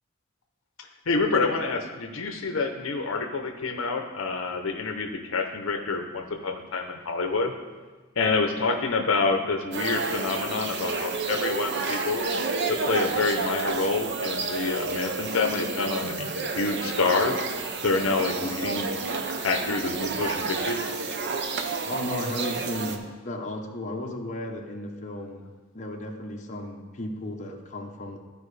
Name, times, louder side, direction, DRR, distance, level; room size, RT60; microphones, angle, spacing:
voice 1, 1.1-7.5 8.2-12.2 12.7-17.5 17.8-18.9 19.4-20.8 21.7-21.8, left 3 dB, 70° left, 4 dB, 0.7 m, -27 dB
sound 1, 9.7-23.0, right 4 dB, 55° right, 0.7 m, -30 dB
voice 2, 21.8-25.5 25.7-28.2, left 1 dB, 35° left, 1 dB, 0.8 m, -34 dB
14.0 x 5.0 x 3.3 m, 1.4 s
head